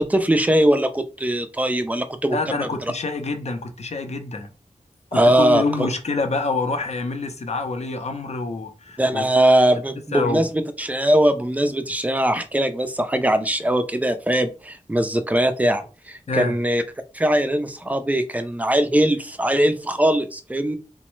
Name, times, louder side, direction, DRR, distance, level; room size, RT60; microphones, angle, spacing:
voice 1, 0.0-2.7 5.1-5.9 9.0-16.8 17.1-20.8, right 1 dB, 10° right, 0.4 m, -21 dB
voice 2, 2.3-4.5 5.1-9.2 10.1-10.5 16.3-16.6, left 3 dB, 55° left, 0.5 m, -26 dB
3.0 x 2.0 x 3.0 m
wide cardioid pair, 70°, 13 cm